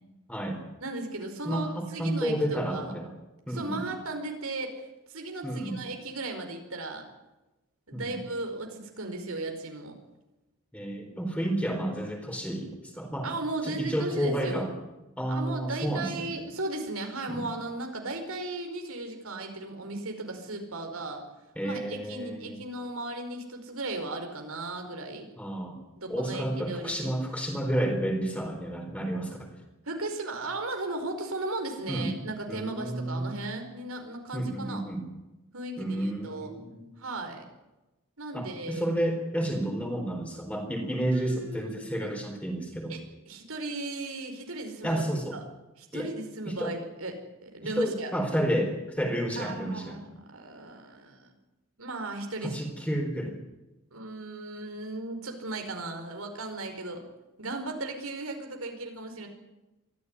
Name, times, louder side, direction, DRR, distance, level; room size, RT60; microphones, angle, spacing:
voice 1, 0.3-0.6 1.4-3.1 3.5-3.9 5.4-5.8 7.9-8.2 10.7-13.3 13.6-14.7 15.2-16.3 17.3-17.5 21.6-22.6 25.4-25.8 26.1-29.5 31.9-32.1 32.5-33.3 34.3-35.0 35.8-36.9 38.3-43.0 44.8-45.4 45.9-46.1 46.5-46.7 47.6-50.0 52.4-53.4, right 1 dB, 5° left, 3 dB, 4.1 m, -31 dB
voice 2, 0.8-2.9 3.5-7.0 7.9-9.9 13.2-14.7 15.3-21.2 21.6-25.3 26.0-27.2 29.8-34.8 35.5-36.5 37.0-37.4 38.2-38.8 41.1-42.1 42.9-45.0 45.3-45.4 45.8-47.1 47.4-48.1 49.4-51.3 51.8-52.6 53.9-57.0 57.4-59.3, right 2 dB, 80° right, 4 dB, 5.0 m, -36 dB
24.0 x 15.0 x 9.9 m, 1.0 s
head